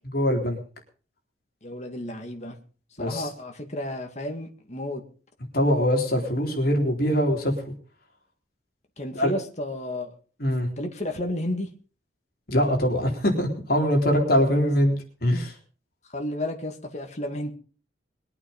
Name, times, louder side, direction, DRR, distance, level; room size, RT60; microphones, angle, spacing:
voice 1, 0.1-0.6 3.0-3.3 5.5-7.5 9.1-9.3 10.4-10.7 12.5-15.0 15.2-15.5, equal, 55° left, 2 dB, 3.9 m, -22 dB
voice 2, 1.6-2.5 3.0-5.0 9.0-10.1 10.8-11.7 14.6-14.7 16.1-17.5, left 1 dB, 40° left, 3 dB, 2.4 m, -32 dB
22.0 x 8.6 x 5.5 m, 0.40 s
head